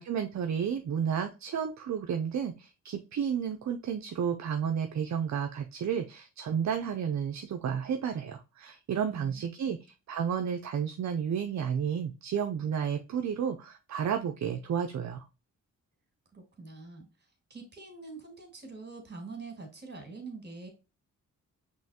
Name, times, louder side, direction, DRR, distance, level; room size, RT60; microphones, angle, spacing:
voice 1, 0.0-9.8 10.1-15.3, right 7 dB, 55° right, 6 dB, 0.6 m, -32 dB
voice 2, 9.1-9.8 16.3-17.1 17.5-20.7, right 3 dB, 30° right, 4 dB, 2.1 m, -45 dB
5.4 x 3.1 x 2.8 m, 0.30 s
cardioid pair, 70°, 33 cm